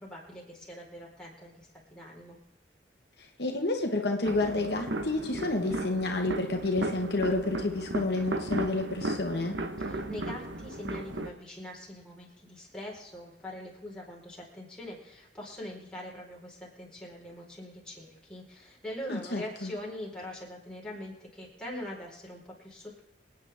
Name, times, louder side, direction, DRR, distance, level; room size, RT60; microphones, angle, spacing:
voice 1, 0.0-2.4 9.8-23.0, left 1 dB, 5° left, -4 dB, 4.3 m, -43 dB
voice 2, 3.2-9.5 19.1-19.7, left 2 dB, 65° left, 2 dB, 1.4 m, -30 dB
sound 1, 4.2-11.3, right 2 dB, 80° right, 1.1 m, -35 dB
26.5 x 9.3 x 3.6 m, 0.86 s
head